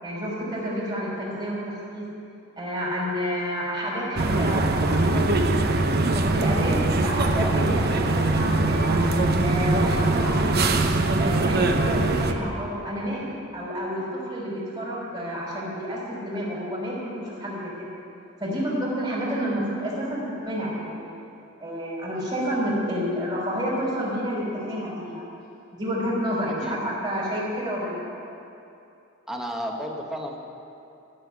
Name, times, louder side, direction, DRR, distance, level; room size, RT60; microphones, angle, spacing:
voice 1, 0.0-2.1 2.6-5.7 6.1-7.2 7.5-9.0 9.4-10.8 11.2-17.9 18.4-21.2 21.6-25.2 25.8-28.0, equal, 20° right, -7 dB, 3.6 m, -29 dB
sound 1, 4.2-12.3, right 2 dB, 50° right, 0.8 m, -22 dB
voice 2, 29.3-30.4, equal, 5° right, 1 dB, 1.2 m, -31 dB
13.5 x 6.9 x 9.5 m, 2.7 s
head